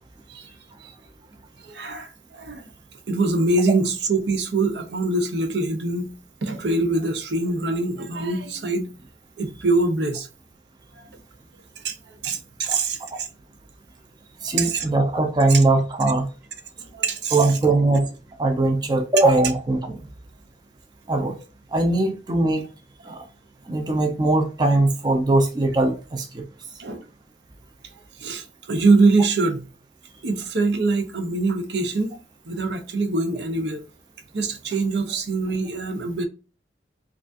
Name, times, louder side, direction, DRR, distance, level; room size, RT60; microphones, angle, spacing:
voice 1, 1.6-2.7 3.1-6.1 6.4-8.9 9.4-10.3 11.0-11.1 11.8-13.3 14.6-14.8 16.8-17.5 23.8-24.0 26.8-27.0 28.2-29.7 30.2-32.2 32.5-33.8 34.3-36.2, right 3 dB, 65° right, 0.7 m, -24 dB
voice 2, 14.4-16.3 17.3-18.1 18.4-20.0 21.1-21.4 21.7-22.6 23.0-23.2 23.7-26.4, right 2 dB, 25° right, 0.5 m, -20 dB
4.8 x 2.4 x 2.5 m
head